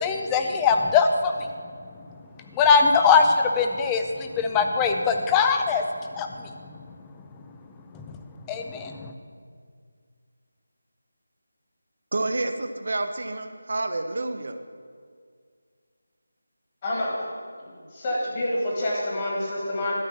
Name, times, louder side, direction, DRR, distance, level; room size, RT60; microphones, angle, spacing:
voice 1, 0.0-1.5 2.5-5.8 6.2-6.5 7.9-8.2 8.5-9.1, left 5 dB, 10° left, 5 dB, 0.5 m, -21 dB
voice 2, 12.1-14.6, right 2 dB, 60° right, 8 dB, 0.8 m, -29 dB
voice 3, 17.9-19.9, left 1 dB, 30° left, -5 dB, 2.3 m, -27 dB
13.0 x 4.5 x 7.4 m, 2.1 s
figure-of-eight pair, 170°, 0 cm